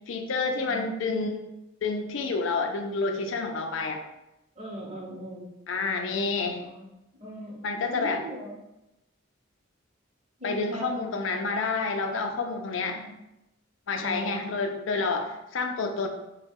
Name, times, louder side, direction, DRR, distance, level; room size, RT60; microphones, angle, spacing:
voice 1, 0.1-1.4 1.8-4.0 5.7-6.7 7.6-8.2 10.4-13.0 13.9-16.1, left 4 dB, 70° left, 5 dB, 0.4 m, -29 dB
voice 2, 4.6-5.5 6.6-6.9 7.1-8.6 10.4-11.0 12.9-13.3 14.0-14.5, equal, 30° right, -3 dB, 0.9 m, -39 dB
3.9 x 2.2 x 3.5 m, 0.90 s
head